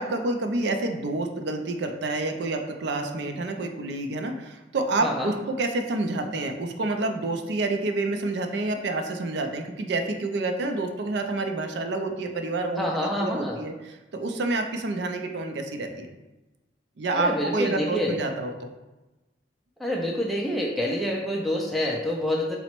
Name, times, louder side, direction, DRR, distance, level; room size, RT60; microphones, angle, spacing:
voice 1, 0.0-16.1 17.0-18.7, right 2 dB, 65° right, 5 dB, 0.4 m, -28 dB
voice 2, 5.0-5.3 12.8-13.6 17.1-18.2 19.8-22.6, left 1 dB, ahead, -2 dB, 0.3 m, -27 dB
4.0 x 2.0 x 4.3 m, 1.1 s
head